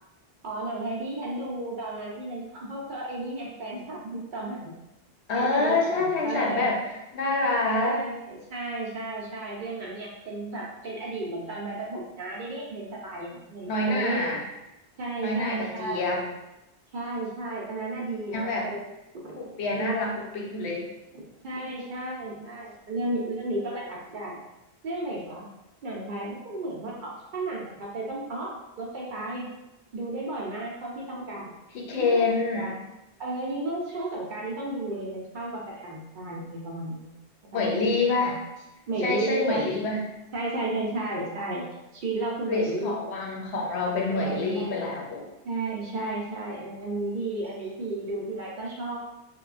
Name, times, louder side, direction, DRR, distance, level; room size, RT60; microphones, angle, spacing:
voice 1, 0.4-4.7 5.3-6.8 7.7-14.3 15.0-16.1 16.9-18.8 19.2-19.4 19.7-19.9 21.1-24.4 24.8-25.5 25.8-29.5 29.9-31.5 31.9-32.2 32.5-32.8 33.2-37.1 37.5-37.7 38.2-38.4 38.9-39.7 40.3-41.6 41.9-42.9 44.1-44.7 45.4-49.0, right 2 dB, 60° right, -4 dB, 0.6 m, -33 dB
voice 2, 5.3-6.8 7.1-8.0 13.7-14.4 15.2-16.2 18.3-18.7 19.4-20.9 31.7-32.7 37.5-38.3 39.0-40.1 42.5-45.2, left 3 dB, 75° left, -1 dB, 0.9 m, -26 dB
3.0 x 2.2 x 2.4 m, 0.94 s
omnidirectional pair, 1.1 m